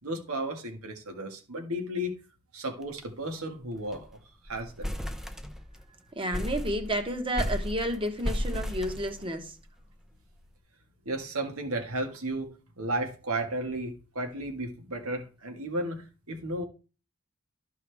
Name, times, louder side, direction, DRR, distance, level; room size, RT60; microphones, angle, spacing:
voice 1, 0.0-2.2 2.5-4.2 4.4-4.9 11.1-12.5 12.8-16.6, right 1 dB, 85° right, 1.9 m, -34 dB
sound 1, 2.8-3.0 3.3-3.4 3.7-4.1 4.5-5.9 6.3-9.6, equal, ahead, 0.5 m, -34 dB
voice 2, 6.1-9.5, equal, 25° right, 1.2 m, -31 dB
13.0 x 5.7 x 3.5 m
head